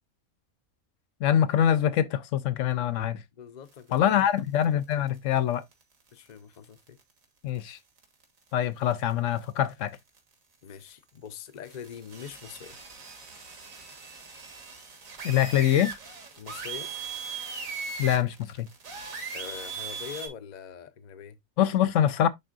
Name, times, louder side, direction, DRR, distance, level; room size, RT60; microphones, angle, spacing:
voice 1, 1.2-3.2 3.9-5.6 7.4-7.8 8.5-10.0 15.2-15.9 18.0-18.7 21.6-22.3, left 10 dB, 70° left, 0.9 m, -24 dB
voice 2, 3.3-4.3 6.1-7.0 10.6-12.8 16.4-16.9 19.3-21.4, left 8 dB, 40° left, 0.7 m, -43 dB
sound 1, 3.9-4.7 4.9-5.1 5.4-5.5 5.7-5.8 6.6-7.0 7.6-7.7 8.0-8.2 8.9-9.1 9.4-9.5 9.9-10.2 11.6-20.3, right 5 dB, 70° right, 2.1 m, -39 dB
11.0 x 3.7 x 2.5 m
omnidirectional pair, 1.4 m